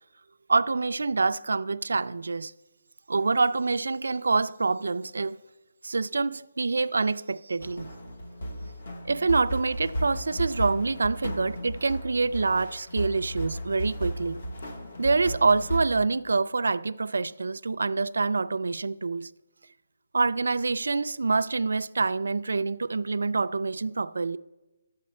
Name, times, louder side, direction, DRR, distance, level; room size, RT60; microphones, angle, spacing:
voice 1, 0.5-2.5 3.1-5.4 5.8-7.9 9.0-14.4 15.0-19.3 20.1-24.4, right 3 dB, 80° right, 0.3 m, -26 dB
sound 1, 7.6-15.8, equal, 40° left, 1.0 m, -35 dB
12.0 x 7.8 x 4.2 m
hypercardioid pair, 180°, 0 cm